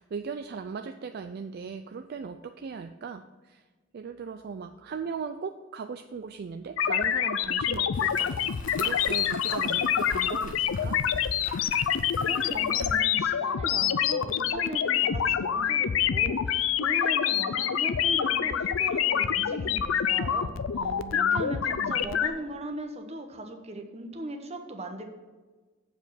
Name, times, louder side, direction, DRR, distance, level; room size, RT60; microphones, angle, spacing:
voice 1, 0.0-3.6 3.9-11.0 20.8-22.0, right 5 dB, 55° right, 7 dB, 0.4 m, -38 dB
sound 1, 6.8-22.3, left 9 dB, 80° left, 0.4 m, -26 dB
sound 2, 7.9-13.0, left 3 dB, 40° left, 1.1 m, -44 dB
voice 2, 12.2-20.6 21.1-25.0, right 1 dB, 35° right, 4 dB, 1.0 m, -38 dB
7.8 x 4.8 x 7.1 m, 1.3 s
head